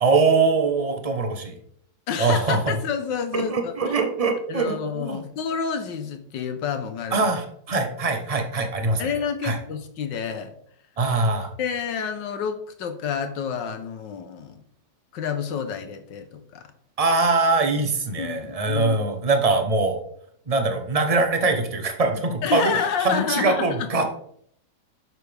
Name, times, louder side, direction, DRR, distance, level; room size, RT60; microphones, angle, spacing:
voice 1, 0.0-1.6 2.2-2.7 3.3-5.2 7.1-9.1 9.4-9.6 11.0-11.5 17.0-20.0 20.5-22.7 23.0-24.1, right 3 dB, 25° right, 5 dB, 0.9 m, -22 dB
voice 2, 2.1-4.0 4.5-7.3 9.0-10.5 11.6-14.6 15.1-16.6 18.2-19.0 22.4-23.9, left 7 dB, 85° left, 8 dB, 1.7 m, -29 dB
8.9 x 6.7 x 3.5 m, 0.66 s
omnidirectional pair, 1.9 m